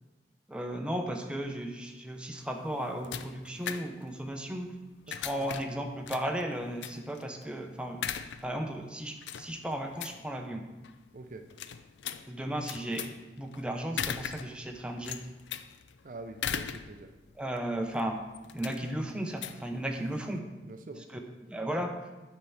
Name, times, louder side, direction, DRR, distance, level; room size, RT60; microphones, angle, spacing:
voice 1, 0.5-4.7 5.1-8.1 8.4-10.6 12.3-13.1 13.4-15.2 17.4-18.2 18.5-20.4 21.4-22.0, right 1 dB, 5° right, 3 dB, 0.6 m, -35 dB
sound 1, 2.4-20.4, left 8 dB, 90° left, 0.4 m, -41 dB
voice 2, 5.1-5.5 11.1-11.4 16.0-17.1 20.6-21.0, right 2 dB, 45° right, 6 dB, 0.5 m, -45 dB
8.6 x 4.6 x 5.5 m, 1.1 s
head